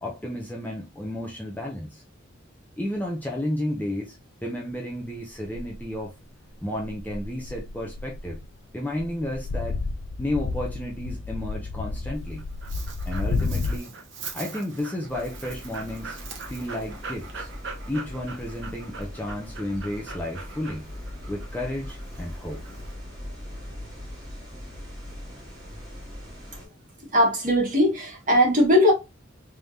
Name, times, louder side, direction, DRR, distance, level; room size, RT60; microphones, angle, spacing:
voice 1, 0.0-2.0 2.8-4.2 4.4-6.1 6.6-8.4 8.7-9.8 10.2-12.4 13.1-13.9 14.3-16.2 16.5-17.5 17.9-20.9 21.3-22.6, left 1 dB, 10° left, 0.6 m, -32 dB
sound 1, 5.5-5.9 6.8-8.6 8.9-13.8, left 3 dB, 90° left, 0.5 m, -31 dB
Dog, 12.1-22.9, right 4 dB, 60° right, 1.0 m, -41 dB
sound 2, 15.1-26.7, left 1 dB, 20° right, 2.0 m, -40 dB
voice 2, 27.1-28.9, left 1 dB, 40° right, 1.7 m, -19 dB
3.5 x 3.4 x 2.7 m
head